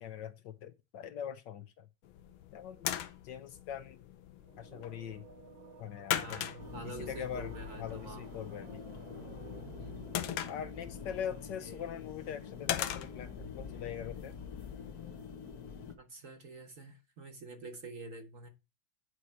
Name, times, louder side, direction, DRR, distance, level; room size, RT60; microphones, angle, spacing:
voice 1, 0.0-1.9 2.5-2.9 3.2-4.0 4.6-5.3 5.8-6.4 6.8-8.8 10.5-14.4, left 9 dB, 70° left, 1.2 m, -42 dB
sound 1, 2.0-15.1, left 11 dB, 85° left, 1.6 m, -42 dB
sound 2, 4.4-10.9, right 8 dB, 75° right, 1.8 m, -55 dB
voice 2, 6.1-8.3 9.8-10.1 16.0-18.5, right 2 dB, 50° right, 1.1 m, -47 dB
sound 3, 6.6-16.0, left 6 dB, 55° left, 1.4 m, -46 dB
9.8 x 4.7 x 4.3 m
omnidirectional pair, 2.3 m